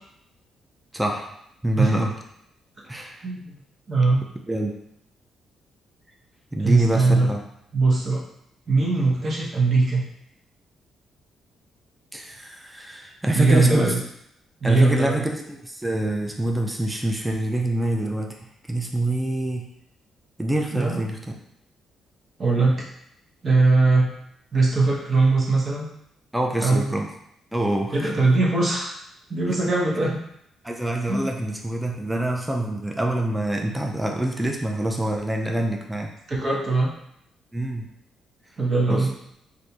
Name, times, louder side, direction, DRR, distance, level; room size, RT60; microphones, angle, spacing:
voice 1, 0.9-1.3 1.6-2.1 2.9-3.2 4.5-4.8 6.5-7.4 12.1-13.9 14.6-18.4 18.7-19.7 20.4-21.2 26.3-27.1 27.5-28.1 29.5-29.6 30.6-36.1 37.5-37.9 38.9-39.1, right 1 dB, 5° right, 1 dB, 0.4 m, -25 dB
voice 2, 3.2-3.5 3.9-4.2 6.6-7.3 7.7-8.2 8.7-10.0 13.3-14.0 14.6-15.2 20.7-21.0 22.4-22.8 23.4-24.1 24.5-25.9 26.6-26.9 27.9-29.0 29.3-30.2 31.1-31.2 36.3-36.9 38.6-39.1, right 3 dB, 35° right, -3 dB, 0.8 m, -20 dB
3.3 x 2.5 x 2.8 m, 0.76 s
cardioid pair, 130°, 0 cm